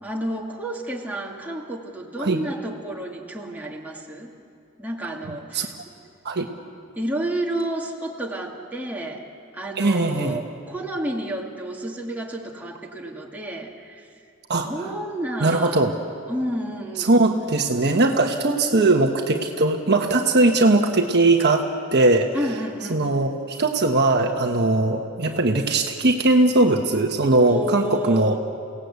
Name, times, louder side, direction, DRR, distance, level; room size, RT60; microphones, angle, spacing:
voice 1, 0.0-4.3 4.8-5.7 7.0-9.2 9.5-14.1 14.6-15.9 16.3-17.1 22.3-23.0 27.5-28.4, right 1 dB, 10° right, -2 dB, 2.2 m, -30 dB
voice 2, 9.8-10.4 14.5-14.9 15.4-15.9 17.0-22.3 22.9-28.4, right 2 dB, 50° right, 3 dB, 1.3 m, -20 dB
29.0 x 17.5 x 8.3 m, 2.5 s
head